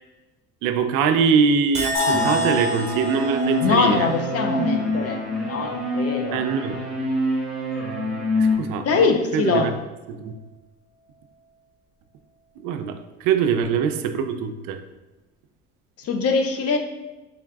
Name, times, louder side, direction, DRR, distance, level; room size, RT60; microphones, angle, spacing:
voice 1, 0.6-4.1 6.3-6.8 8.4-9.1 9.3-9.7 10.1-10.3 12.6-14.8, right 6 dB, 70° right, 8 dB, 0.5 m, -23 dB
Chink clink, 1.7-8.3 8.7-9.3, right 2 dB, 20° right, 0.8 m, -34 dB
sound 1, 1.9-5.9, left 3 dB, 65° left, 1.4 m, -30 dB
sound 2, 2.1-8.6, left 1 dB, ahead, 1.2 m, -26 dB
voice 2, 3.6-6.4 8.8-9.8 16.0-16.8, left 5 dB, 45° left, 5 dB, 0.6 m, -23 dB
3.9 x 3.6 x 2.3 m, 1.1 s
supercardioid pair, 100°, 34 cm